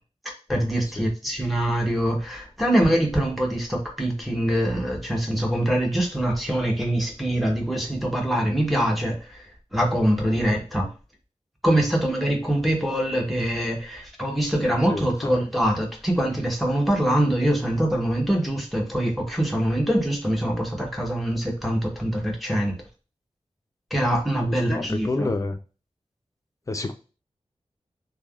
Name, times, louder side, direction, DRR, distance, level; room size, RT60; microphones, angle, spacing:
voice 1, 0.5-10.9 11.6-22.8 23.9-25.3, right 1 dB, ahead, -1 dB, 0.9 m, -24 dB
voice 2, 14.9-15.4 24.4-25.6 26.7-26.9, left 2 dB, 30° left, 7 dB, 0.4 m, -29 dB
3.3 x 2.2 x 2.3 m, 0.33 s
wide cardioid pair, 80°, 11 cm